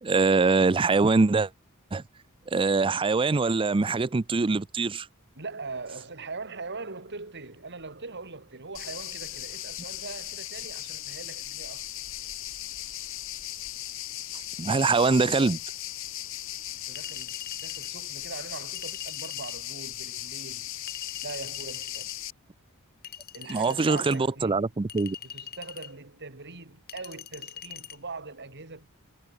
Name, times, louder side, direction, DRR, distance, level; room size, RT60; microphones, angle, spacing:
voice 1, 0.0-1.5 1.9-2.0 2.5-5.1 14.6-15.6 23.5-25.2, right 3 dB, 25° right, 0.5 m, -23 dB
voice 2, 5.4-11.9 16.7-20.7 21.2-22.1 23.3-24.7 25.2-28.9, right 3 dB, 55° right, 3.5 m, -41 dB
sound 1, 8.7-22.3, left 13 dB, 65° left, 4.4 m, -37 dB
Chink clink, 17.0-17.9 18.7-19.6 20.9-22.1 23.0-24.2 24.9-25.9 26.9-28.0, left 9 dB, 45° left, 3.2 m, -43 dB
head